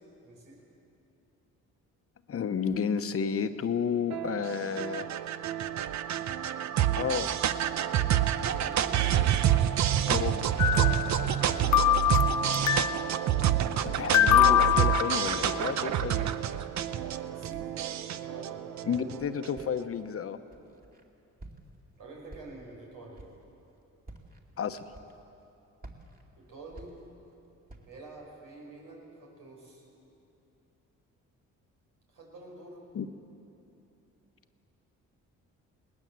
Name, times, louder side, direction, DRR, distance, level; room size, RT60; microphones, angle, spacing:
voice 1, 0.2-0.6 8.5-9.0 11.3-12.0 17.0-19.4 22.0-23.2 26.4-27.0 27.8-29.8 32.1-32.8, right 2 dB, 85° right, -2 dB, 6.2 m, -48 dB
voice 2, 2.3-5.1 6.9-7.3 10.1-10.5 13.8-16.3 18.9-20.4 24.6-24.8 32.9-33.1, left 7 dB, 50° left, 10 dB, 1.0 m, -31 dB
sound 1, 4.1-19.6, right 11 dB, 65° right, 0.8 m, -28 dB
sound 2, 10.6-11.5 11.7-13.1 14.1-15.7, left 12 dB, 65° left, 0.6 m, -24 dB
Walk footsteps, 19.5-20.0 20.5-21.0 21.4-21.9 22.3-22.8 23.1-23.5 24.0-24.4 24.9-25.4 25.8-27.3 27.7-28.1, right 2 dB, 30° right, 2.5 m, -50 dB
20.5 x 19.0 x 7.6 m, 2.9 s
cardioid pair, 90°, 30 cm